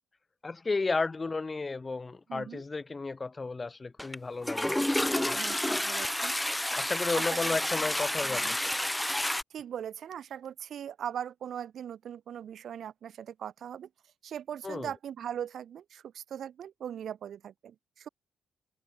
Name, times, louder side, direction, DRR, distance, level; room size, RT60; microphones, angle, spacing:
voice 1, 0.4-5.4 6.7-8.7 14.6-14.9, left 3 dB, 25° left, 0.8 m, -33 dB
voice 2, 2.3-2.6 5.3-6.4 7.1-7.6 8.2-8.6 9.5-13.9 14.2-18.1, right 9 dB, 65° right, 7.0 m, -40 dB
Toilet flush, 4.0-4.2 4.4-9.4, left 1 dB, 5° left, 1.4 m, -30 dB
cardioid pair, 90°, 0 cm